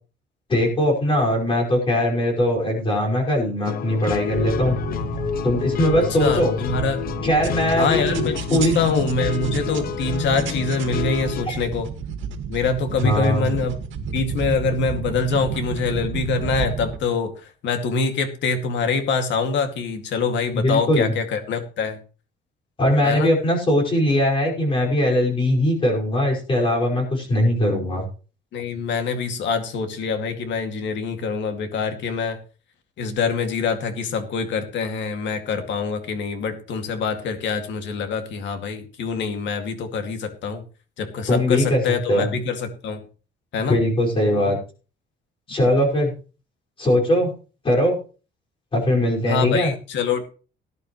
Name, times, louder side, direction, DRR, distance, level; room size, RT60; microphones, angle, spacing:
voice 1, 0.5-4.8 5.4-6.5 7.2-8.8 11.5-11.6 13.0-13.5 20.5-21.1 22.8-28.1 41.3-41.8 42.1-42.3 43.7-44.6 45.5-46.1 46.8-47.3 47.6-48.0 48.7-49.7, left 1 dB, 30° left, -1 dB, 5.5 m, -20 dB
sound 1, 3.6-11.4, left 9 dB, 50° left, 0.9 m, -29 dB
sound 2, 4.3-17.0, right 6 dB, 85° right, 2.0 m, -31 dB
voice 2, 6.2-7.0 7.8-11.9 12.5-13.8 14.1-22.0 23.0-23.3 28.5-32.4 33.0-40.6 41.0-43.0 43.5-43.8 49.3-50.3, left 4 dB, 70° left, 6 dB, 2.4 m, -25 dB
18.5 x 11.0 x 3.2 m, 0.36 s
cardioid pair, 170°, 19 cm